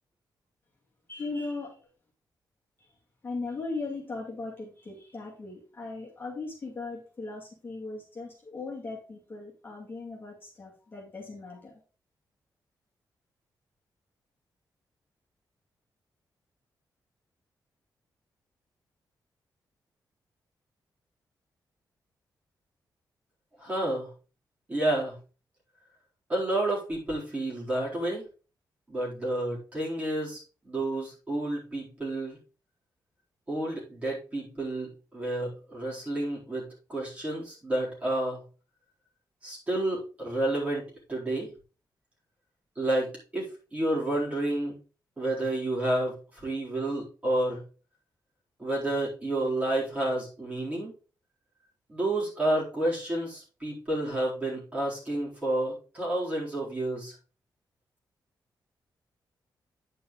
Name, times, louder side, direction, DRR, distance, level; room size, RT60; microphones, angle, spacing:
voice 1, 1.1-1.9 3.2-11.8, left 3 dB, 25° left, -3 dB, 2.4 m, -38 dB
voice 2, 23.6-24.1 24.7-25.1 26.3-28.2 28.9-32.4 33.5-36.6 36.9-38.4 39.4-41.5 42.8-43.1 43.3-44.7 45.2-47.6 48.6-50.9 51.9-57.1, right 1 dB, 20° right, -5 dB, 4.3 m, -30 dB
9.3 x 5.4 x 3.9 m, 0.35 s
wide cardioid pair, 170°, 7 cm